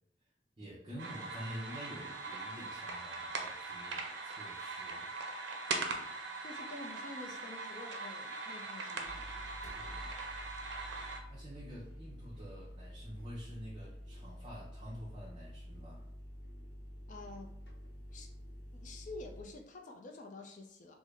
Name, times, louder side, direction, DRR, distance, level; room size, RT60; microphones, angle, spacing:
voice 1, 0.6-5.2 9.5-10.1 11.3-16.1, equal, 25° right, -7 dB, 0.6 m, -48 dB
sound 1, 1.0-11.2, right 3 dB, 75° right, 0.5 m, -41 dB
voice 2, 6.4-9.3 17.1-17.5 18.1-18.3 18.7-21.0, left 2 dB, 45° left, 3 dB, 0.4 m, -48 dB
sound 2, 9.0-19.4, equal, 60° left, 0.8 m, -49 dB
3.6 x 2.1 x 3.2 m, 0.80 s
head